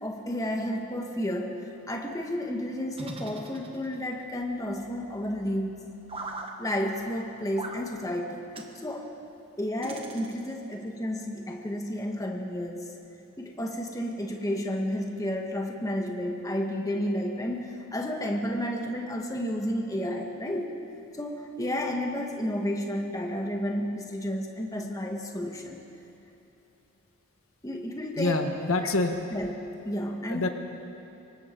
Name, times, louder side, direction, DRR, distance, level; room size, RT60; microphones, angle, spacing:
voice 1, 0.0-6.0 6.6-8.5 8.8-9.1 9.6-12.9 13.4-20.8 21.2-25.8 27.6-28.4 29.3-30.5, equal, 15° left, 1 dB, 1.5 m, -31 dB
sound 1, 2.9-4.2 6.1-6.5 7.6-7.8 8.5-8.7 9.8-10.7, right 2 dB, 25° right, 1.4 m, -39 dB
voice 2, 28.2-29.1 30.3-30.5, left 2 dB, 75° left, 5 dB, 1.5 m, -26 dB
26.0 x 23.5 x 4.6 m, 2.9 s
head